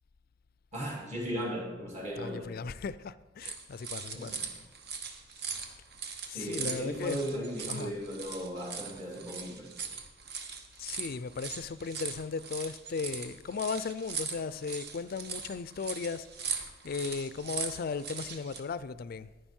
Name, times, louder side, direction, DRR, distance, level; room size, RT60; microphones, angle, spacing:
voice 1, 0.7-2.6 4.1-4.4 6.3-9.7, equal, 40° right, 2.5 m, -37 dB
voice 2, 2.2-4.4 6.2-7.3 7.7-7.9 10.8-19.3, left 5 dB, 55° left, 0.4 m, -36 dB
sound 1, 3.4-18.6, right 6 dB, 60° right, 1.0 m, -40 dB
10.5 x 10.0 x 4.4 m
head